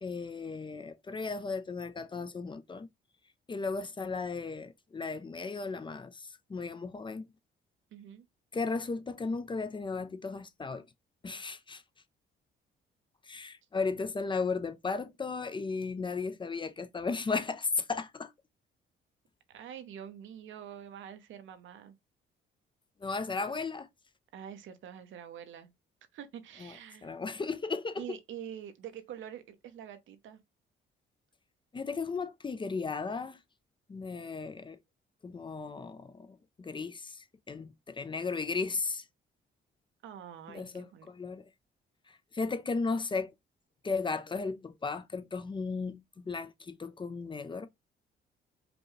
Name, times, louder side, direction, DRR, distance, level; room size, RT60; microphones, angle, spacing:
voice 1, 0.0-2.9 3.5-7.3 8.5-10.9 11.2-11.8 13.2-18.3 23.0-23.9 26.6-28.2 31.7-33.4 33.9-34.8 35.2-39.1 40.5-41.5 42.1-43.3 43.8-47.7, left 4 dB, 25° left, 0.5 m, -35 dB
voice 2, 7.9-8.2 19.5-21.9 24.3-25.7 26.1-27.1 28.0-30.4 40.0-41.1, right 9 dB, 75° right, 0.8 m, -46 dB
5.1 x 2.3 x 3.1 m
cardioid pair, 90°, 20 cm